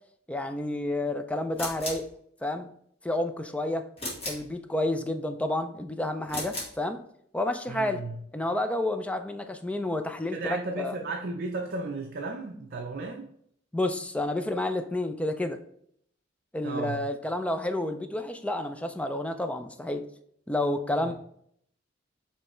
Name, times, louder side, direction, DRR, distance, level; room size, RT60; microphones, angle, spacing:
voice 1, 0.3-2.1 2.4-2.7 3.0-3.9 4.2-7.0 7.3-8.0 8.3-10.9 13.7-15.6 16.5-20.0 20.5-21.1, left 1 dB, 5° left, 7 dB, 0.3 m, -30 dB
sound 1, 1.5-2.1 4.0-4.5 6.2-6.8, left 1 dB, 30° left, 1.7 m, -35 dB
voice 2, 7.7-8.2 10.3-13.3 16.6-17.0 21.0-21.1, right 3 dB, 50° right, 1 dB, 0.5 m, -34 dB
5.4 x 3.2 x 3.0 m, 0.67 s
head